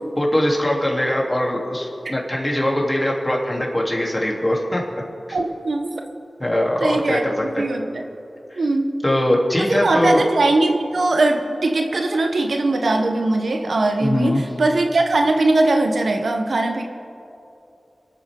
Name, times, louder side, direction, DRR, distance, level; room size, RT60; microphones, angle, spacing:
voice 1, 0.2-4.8 6.4-7.6 8.5-8.6 9.0-10.3 14.0-14.4, left 1 dB, 20° left, -2 dB, 3.1 m, -21 dB
voice 2, 5.3-5.9 6.8-8.0 8.6-9.0 9.6-16.8, right 2 dB, 80° right, 5 dB, 0.9 m, -20 dB
26.0 x 8.8 x 3.7 m, 2.7 s
cardioid pair, 40°, 0 cm